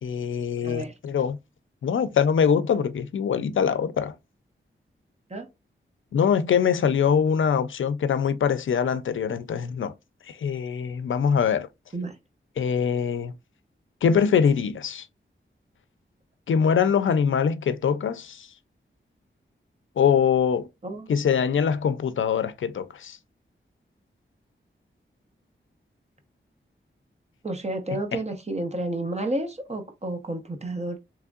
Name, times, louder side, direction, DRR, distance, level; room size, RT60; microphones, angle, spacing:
voice 1, 0.0-1.4 1.8-4.1 6.1-9.9 10.3-11.7 12.6-13.3 14.0-15.1 16.5-18.5 20.0-20.7 21.1-23.2 28.1-28.2, left 7 dB, 75° left, 0.4 m, -23 dB
voice 2, 0.6-0.9 5.3-5.5 11.9-12.2 20.8-21.1 27.4-31.0, right 1 dB, 35° right, 0.9 m, -31 dB
3.5 x 3.1 x 2.3 m
wide cardioid pair, 95°, 20 cm